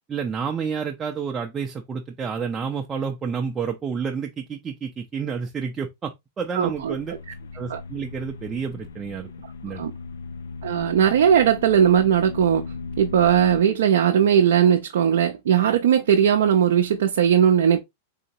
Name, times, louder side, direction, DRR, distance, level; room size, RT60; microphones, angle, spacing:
voice 1, 0.1-7.1 7.5-9.3 9.6-9.8, right 6 dB, 20° right, 0.5 m, -30 dB
voice 2, 6.5-6.9 7.7-7.8 9.8-9.9 10.6-12.6 13.0-17.8, right 9 dB, 75° right, 0.5 m, -18 dB
sound 1, 6.6-13.6, left 4 dB, 85° left, 0.4 m, -37 dB
3.9 x 2.8 x 2.7 m
hypercardioid pair, 120°, 0 cm